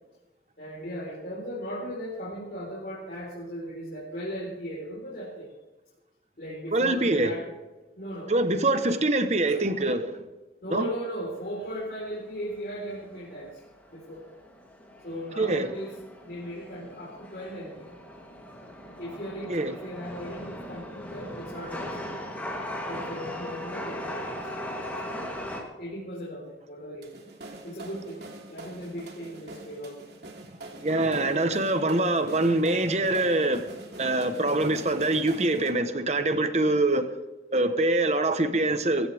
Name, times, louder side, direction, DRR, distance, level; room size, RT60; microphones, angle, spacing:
voice 1, 0.6-5.5 6.4-7.5 8.0-8.3 9.5-9.6 10.6-13.6 13.9-14.2 15.0-15.9 16.2-17.9 19.0-22.1 22.9-24.5 25.1-25.3 25.8-27.1 27.6-30.0 35.5-35.7, equal, 60° left, 4.4 m, -37 dB
voice 2, 6.7-7.3 8.3-10.2 10.7-10.9 15.4-15.7 19.5-19.7 30.8-33.7 34.0-37.1 37.5-39.1, right 2 dB, 40° right, 1.2 m, -24 dB
Chatter / Subway metro underground, 11.4-25.6, left 1 dB, 10° left, 3.1 m, -39 dB
sound 1, 27.0-35.7, right 2 dB, 75° right, 3.0 m, -44 dB
21.5 x 15.5 x 3.6 m
head